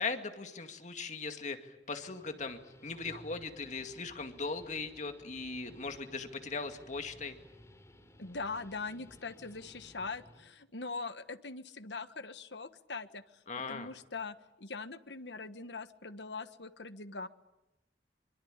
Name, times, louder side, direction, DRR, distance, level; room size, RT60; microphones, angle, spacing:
voice 1, 0.0-7.4 13.5-13.9, left 4 dB, 45° left, 7 dB, 2.2 m, -39 dB
Guitar, 1.8-10.5, equal, 15° left, 3.6 m, -58 dB
voice 2, 8.2-13.4 13.7-17.3, left 4 dB, 75° left, 11 dB, 1.5 m, -42 dB
25.5 x 24.5 x 9.0 m, 0.93 s
head